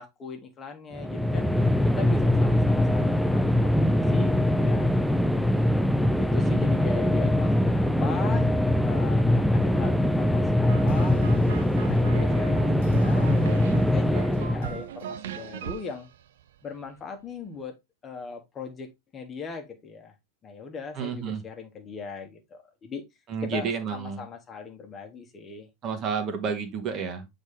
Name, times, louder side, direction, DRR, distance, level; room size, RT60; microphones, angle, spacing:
voice 1, 0.0-1.5 1.9-4.9 6.2-8.5 8.8-13.4 13.9-16.1 16.6-17.8 18.0-20.1 20.4-23.0 23.4-25.7, left 5 dB, 25° left, 1.4 m, -39 dB
sound 1, 1.0-14.8, left 1 dB, ahead, 0.5 m, -22 dB
voice 2, 6.4-6.8 20.9-21.4 23.3-24.2 25.8-27.3, right 6 dB, 30° right, 1.6 m, -31 dB
sound 2, 10.7-17.0, right 10 dB, 55° right, 0.6 m, -38 dB
8.1 x 3.9 x 3.6 m
figure-of-eight pair, 90°, 0 cm